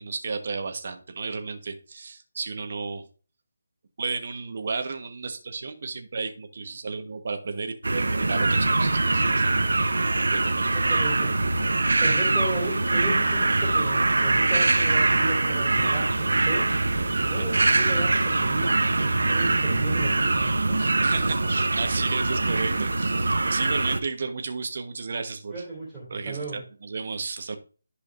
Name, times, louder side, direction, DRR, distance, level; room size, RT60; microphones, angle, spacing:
voice 1, 0.0-3.0 4.0-9.5 10.2-10.8 17.1-17.6 20.8-25.6 26.1-27.6, right 4 dB, 50° right, 6 dB, 1.2 m, -33 dB
sound 1, 7.8-24.0, right 2 dB, 80° right, 1.0 m, -23 dB
voice 2, 10.7-11.3 12.0-16.7 17.2-20.8 25.5-26.6, right 2 dB, 5° right, -9 dB, 3.0 m, -34 dB
14.0 x 4.9 x 2.6 m, 0.37 s
figure-of-eight pair, 165°, 0 cm